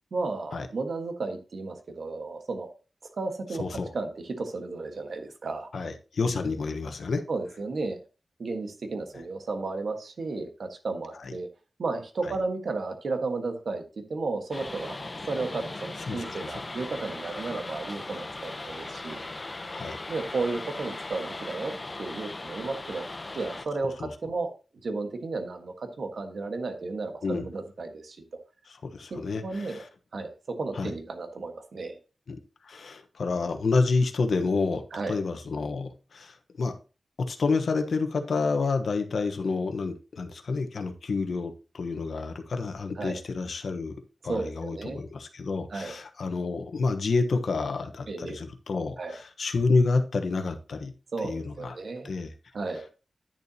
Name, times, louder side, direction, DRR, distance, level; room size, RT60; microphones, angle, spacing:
voice 1, 0.1-2.7 3.1-5.7 7.3-8.0 8.4-11.5 11.8-13.8 14.1-15.0 15.3-19.2 20.1-21.7 22.0-23.0 23.3-24.5 24.8-28.2 29.1-29.8 30.1-32.0 34.9-35.2 42.9-43.2 44.3-45.0 45.7-46.0 48.1-48.4 49.0-49.2 51.1-52.1 52.5-52.8, right 3 dB, 75° right, 6 dB, 1.5 m, -33 dB
voice 2, 3.6-3.9 5.7-7.2 11.2-11.3 12.2-12.3 16.1-16.5 19.7-20.0 24.0-24.1 27.2-27.4 28.8-29.9 30.7-30.9 32.3-32.4 32.6-34.8 35.1-36.7 37.2-50.9 51.2-51.8 52.0-52.3, left 4 dB, 85° left, 7 dB, 1.1 m, -29 dB
sound 1, 14.5-23.7, left 2 dB, 30° left, 0.8 m, -38 dB
10.5 x 6.9 x 2.9 m, 0.33 s
wide cardioid pair, 110°, 0 cm